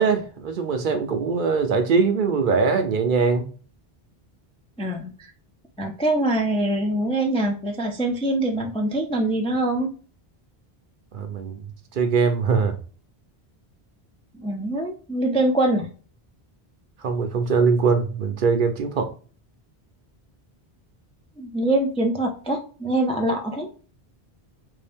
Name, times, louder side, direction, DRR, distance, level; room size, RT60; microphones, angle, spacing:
voice 1, 0.0-3.5 11.1-11.6 11.9-12.8 17.0-19.1, right 5 dB, 60° right, 7 dB, 0.7 m, -22 dB
voice 2, 4.8-5.3 5.8-9.9 14.3-15.9 21.4-23.7, right 1 dB, 10° left, 2 dB, 0.3 m, -24 dB
3.4 x 2.7 x 3.4 m, 0.39 s
omnidirectional pair, 1.0 m